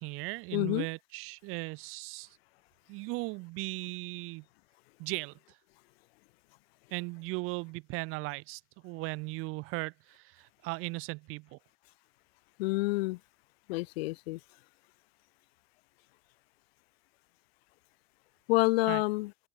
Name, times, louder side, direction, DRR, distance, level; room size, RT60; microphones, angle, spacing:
voice 1, 0.0-2.3 2.9-4.4 5.0-5.3 6.9-11.6 18.9-19.0, right 25 dB, 45° right, 0.5 m, -37 dB
voice 2, 0.5-0.9 12.6-13.2 13.7-14.4 18.5-19.3, left 22 dB, 70° left, 0.9 m, -28 dB
supercardioid pair, 110°, 32 cm